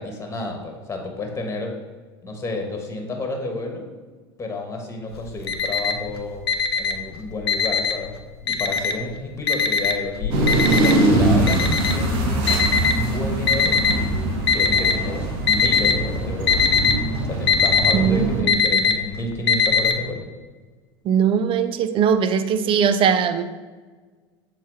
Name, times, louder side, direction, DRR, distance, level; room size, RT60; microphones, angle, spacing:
voice 1, 0.0-1.7 2.2-3.8 4.4-6.4 6.8-8.1 8.4-13.8 14.5-16.6 17.2-20.2, left 2 dB, 20° left, 3 dB, 1.4 m, -30 dB
Alarm, 5.1-6.1 6.4-8.1 8.5-9.1 9.5-13.9 14.5-15.1 15.4-16.0 16.3-19.9, left 5 dB, 85° left, 0.5 m, -20 dB
sound 1, 10.3-18.4, right 2 dB, 70° right, 1.1 m, -22 dB
voice 2, 17.9-18.8 21.0-23.4, right 7 dB, 45° right, 11 dB, 0.5 m, -20 dB
7.5 x 4.1 x 4.0 m, 1.4 s
hypercardioid pair, 80°, 13 cm